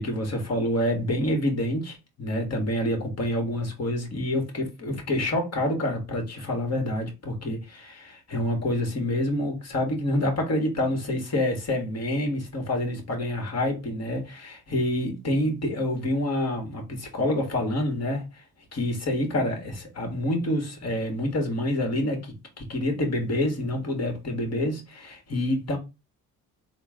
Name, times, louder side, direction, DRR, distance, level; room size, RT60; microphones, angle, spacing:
voice 1, 0.0-18.4 18.7-25.8, left 1 dB, 40° left, 1.6 m, -27 dB
3.7 x 2.3 x 3.6 m
supercardioid pair, 65°, 40 cm